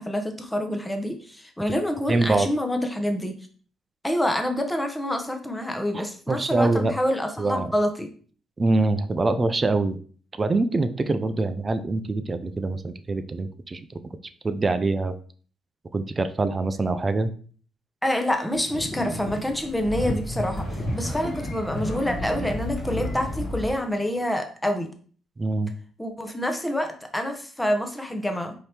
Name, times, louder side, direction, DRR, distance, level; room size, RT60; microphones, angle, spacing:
voice 1, 0.0-3.3 4.0-8.1 18.0-24.9 26.0-28.5, left 1 dB, 10° left, 5 dB, 0.7 m, -27 dB
voice 2, 2.1-2.5 5.9-6.9 7.4-7.7 8.6-10.0 10.4-13.8 14.4-15.1 15.9-17.3 25.4-25.7, right 3 dB, 30° right, 10 dB, 0.4 m, -24 dB
sound 1, 18.5-24.2, equal, 30° left, 1.3 m, -41 dB
sound 2, 19.5-23.8, left 1 dB, 90° left, 1.8 m, -31 dB
4.3 x 2.8 x 3.3 m, 0.43 s
cardioid pair, 90°, 0 cm